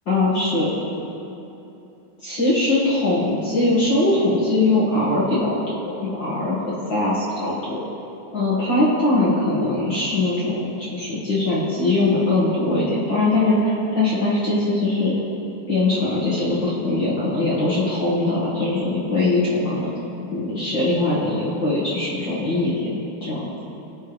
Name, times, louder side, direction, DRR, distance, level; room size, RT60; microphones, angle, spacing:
voice 1, 0.1-0.8 2.2-6.6 6.9-7.8 8.3-15.1 15.7-19.9 20.3-23.5, left 2 dB, 55° left, -9 dB, 1.3 m, -21 dB
17.0 x 5.7 x 3.1 m, 2.9 s
omnidirectional pair, 4.4 m